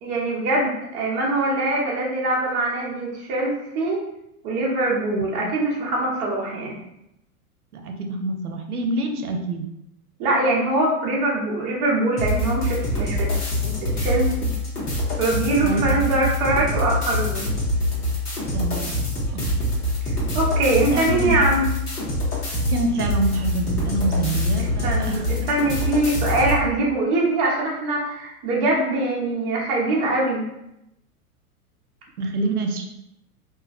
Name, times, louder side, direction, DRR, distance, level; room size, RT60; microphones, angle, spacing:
voice 1, 0.0-4.0 4.4-6.8 10.2-13.3 13.6-14.5 15.2-17.5 20.3-21.7 24.8-30.5, right 2 dB, 20° right, -3 dB, 0.4 m, -23 dB
voice 2, 5.1-5.5 6.7-6.8 7.7-9.7 15.6-16.0 18.5-18.9 19.3-19.7 20.9-21.4 22.7-25.5 32.2-32.9, right 2 dB, 80° right, 4 dB, 0.5 m, -26 dB
sound 1, 12.2-26.6, left 1 dB, 85° left, 0.9 m, -25 dB
3.0 x 2.3 x 2.4 m, 0.84 s
figure-of-eight pair, 95°, 45 cm